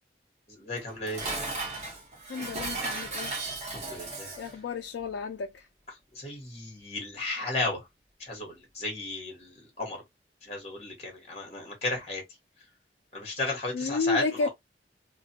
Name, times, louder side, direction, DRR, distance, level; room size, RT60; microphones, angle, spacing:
voice 1, 0.5-1.2 3.7-4.3 6.1-7.9 8.2-10.0 10.4-12.2 13.1-14.5, left 2 dB, 35° left, 1.2 m, -34 dB
Dishes pots and pans, 0.7-4.6, right 2 dB, 40° right, 0.9 m, -35 dB
voice 2, 2.3-3.3 4.4-5.7 13.7-14.5, left 4 dB, 85° left, 0.3 m, -31 dB
2.4 x 2.2 x 2.7 m
head